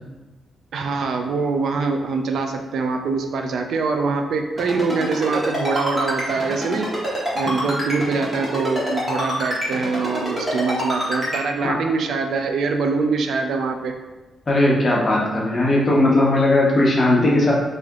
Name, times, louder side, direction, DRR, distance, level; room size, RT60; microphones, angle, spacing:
voice 1, 0.7-6.9 7.3-14.0, right 4 dB, 75° right, 5 dB, 0.3 m, -24 dB
Ringtone, 4.6-11.4, equal, 15° right, 1.4 m, -25 dB
voice 2, 14.5-17.5, left 1 dB, 30° left, -4 dB, 0.8 m, -17 dB
3.3 x 2.6 x 3.6 m, 1.2 s
cardioid pair, 130°, 0 cm